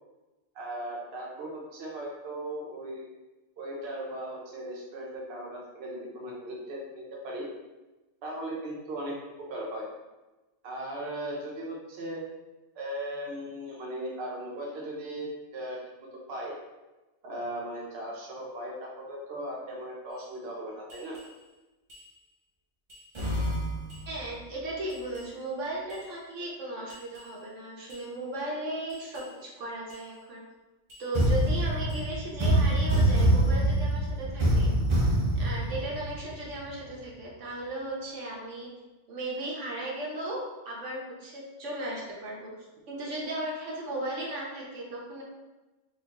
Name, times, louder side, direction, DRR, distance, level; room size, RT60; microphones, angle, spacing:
voice 1, 0.5-3.1 3.6-7.5 8.2-9.2 9.5-9.9 10.6-12.2 12.8-15.8 16.3-16.5 17.2-21.2, right 1 dB, 60° right, -3 dB, 1.0 m, -37 dB
sound 1, 20.9-21.2 21.9-22.0 22.9-24.2 24.9-25.2 25.9-26.0 26.9-27.2 27.9-28.0 28.9-29.2 29.9-30.0 30.9-36.7, right 1 dB, 30° right, 0.6 m, -26 dB
voice 2, 24.1-30.4 31.0-34.7 35.4-38.7 39.1-40.4 40.6-42.5 42.9-45.2, right 1 dB, 90° right, -4 dB, 1.3 m, -36 dB
4.3 x 2.5 x 2.9 m, 1.1 s
omnidirectional pair, 1.2 m